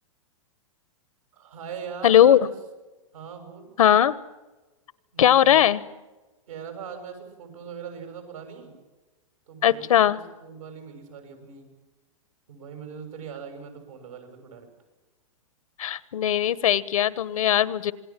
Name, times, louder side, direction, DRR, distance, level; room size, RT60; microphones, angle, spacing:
voice 1, 1.3-2.5 3.1-3.7 5.1-5.6 6.5-8.8 9.5-11.7 12.5-14.7, right 7 dB, 80° right, 5 dB, 7.7 m, -40 dB
voice 2, 2.0-2.4 3.8-4.1 5.2-5.8 9.6-10.2 15.8-17.9, left 10 dB, 80° left, 18 dB, 1.2 m, -19 dB
27.0 x 20.0 x 7.5 m, 1.2 s
hypercardioid pair, 140°, 17 cm